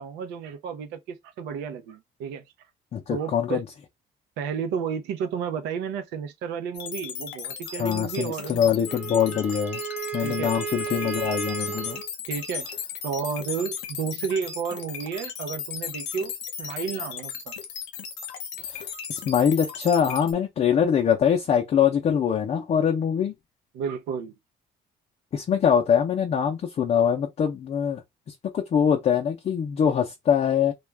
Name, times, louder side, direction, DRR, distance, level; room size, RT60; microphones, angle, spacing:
voice 1, 0.0-2.4 3.1-3.6 4.4-9.0 10.2-10.6 12.3-12.7 13.0-17.5 23.7-24.4, right 7 dB, 90° right, 0.6 m, -32 dB
voice 2, 2.9-3.6 7.8-9.8 10.1-12.0 18.7-23.3 25.3-28.0 28.5-30.7, left 8 dB, 40° left, 0.5 m, -23 dB
sound 1, 6.7-20.3, left 7 dB, 85° left, 0.7 m, -36 dB
Wind instrument woodwind instrument, 8.8-12.1, right 8 dB, 10° right, 0.5 m, -33 dB
2.4 x 2.2 x 3.1 m
cardioid pair, 110°, 17 cm